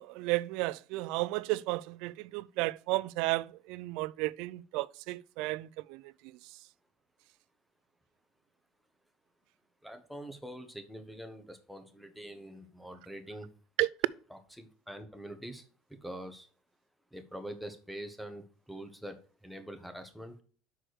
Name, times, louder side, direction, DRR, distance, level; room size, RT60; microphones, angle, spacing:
voice 1, 0.0-6.1 13.8-13.9, right 20 dB, 70° right, 0.3 m, -33 dB
voice 2, 9.8-13.5 14.3-15.7 16.0-16.5 17.1-19.2 19.4-20.4, right 1 dB, ahead, 1.2 m, -44 dB
6.2 x 4.6 x 6.4 m
cardioid pair, 130°, 0 cm